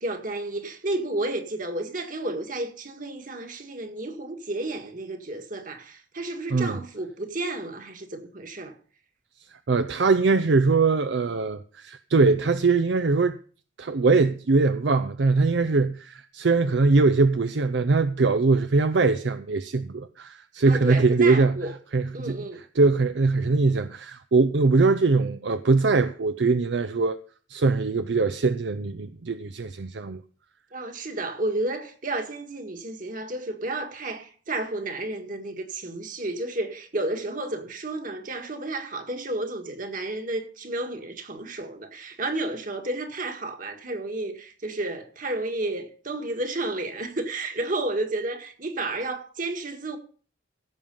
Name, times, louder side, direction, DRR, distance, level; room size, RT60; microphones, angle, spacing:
voice 1, 0.0-8.8 20.7-21.7 22.1-22.6 30.7-50.0, right 2 dB, 45° right, 1.8 m, -31 dB
voice 2, 9.5-13.4 13.8-21.6 21.9-22.4 22.8-27.2 27.5-30.2, right 3 dB, 70° right, 0.5 m, -22 dB
16.0 x 7.4 x 5.4 m
head